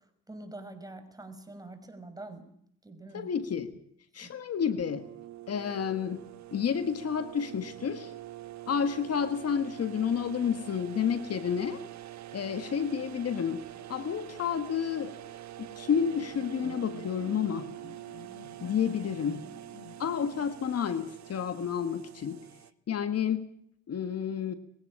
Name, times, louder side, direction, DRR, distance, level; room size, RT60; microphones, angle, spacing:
voice 1, 0.3-2.4 2.8-3.3 4.2-4.3 19.2-19.4, right 2 dB, 10° right, 7 dB, 5.6 m, -45 dB
voice 2, 3.1-3.8 4.1-5.1 5.5-8.1 8.7-11.8 12.3-15.2 15.6-17.7 18.6-19.5 20.0-22.5 22.9-23.5 23.9-24.5, left 7 dB, 55° left, 11 dB, 1.6 m, -30 dB
sound 1, 4.8-22.7, right 14 dB, 65° right, 1.3 m, -45 dB
sound 2, 15.9-20.8, left 4 dB, 75° left, 5.9 m, -51 dB
21.5 x 17.0 x 8.7 m, 0.70 s
cardioid pair, 90°, 30 cm